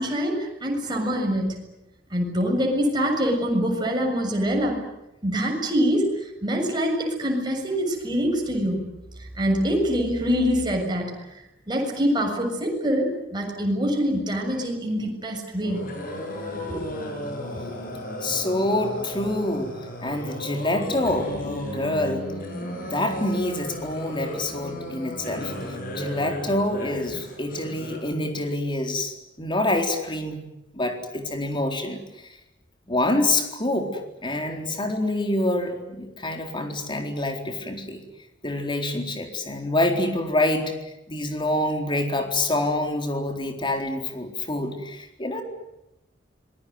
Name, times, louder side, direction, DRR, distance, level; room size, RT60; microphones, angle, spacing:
voice 1, 0.0-1.6 2.1-4.8 5.2-8.9 9.4-11.1 11.7-15.9 16.7-16.9 17.6-17.7, equal, 25° right, 1 dB, 7.1 m, -24 dB
sound 1, 15.6-28.0, left 1 dB, 50° left, 7.9 m, -34 dB
voice 2, 18.2-19.7 20.0-22.3 22.6-25.5 25.9-30.4 30.7-32.0 32.9-33.9 34.2-38.0 38.4-40.7 41.1-45.4, left 1 dB, 25° left, 4 dB, 4.1 m, -26 dB
26.5 x 22.0 x 9.6 m, 0.90 s
head